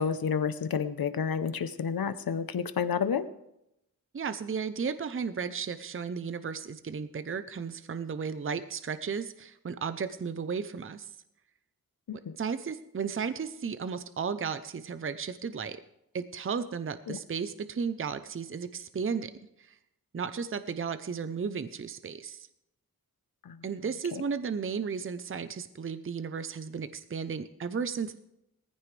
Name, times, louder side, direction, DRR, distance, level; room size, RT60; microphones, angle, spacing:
voice 1, 0.0-3.3 12.1-12.3 17.1-17.2 23.4-23.6, left 6 dB, 85° left, 13 dB, 0.8 m, -30 dB
voice 2, 4.1-11.1 12.1-15.8 16.1-19.3 19.6-19.8 20.1-22.5 23.6-28.2, right 6 dB, 35° right, 12 dB, 0.6 m, -34 dB
19.0 x 14.5 x 3.3 m, 0.84 s
wide cardioid pair, 115°, 35 cm